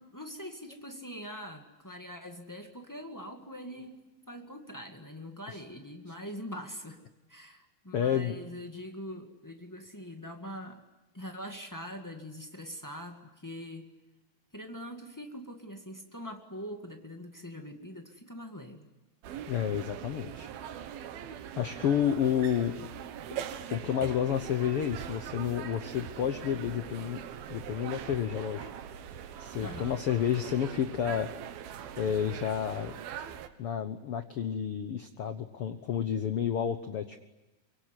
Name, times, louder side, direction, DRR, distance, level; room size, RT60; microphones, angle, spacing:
voice 1, 0.0-7.0 7.3-10.8 11.1-13.9 14.5-18.9 29.6-30.0, equal, 30° left, 3 dB, 0.3 m, -43 dB
voice 2, 7.9-8.3 19.5-20.5 21.6-22.7 23.3-23.4 23.7-27.2 27.5-28.7 29.4-31.3 32.0-32.9 33.6-37.2, left 9 dB, 85° left, 9 dB, 1.2 m, -30 dB
sound 1, 19.2-33.5, right 9 dB, 90° right, 3.3 m, -42 dB
24.5 x 23.5 x 9.9 m, 1.1 s
omnidirectional pair, 4.2 m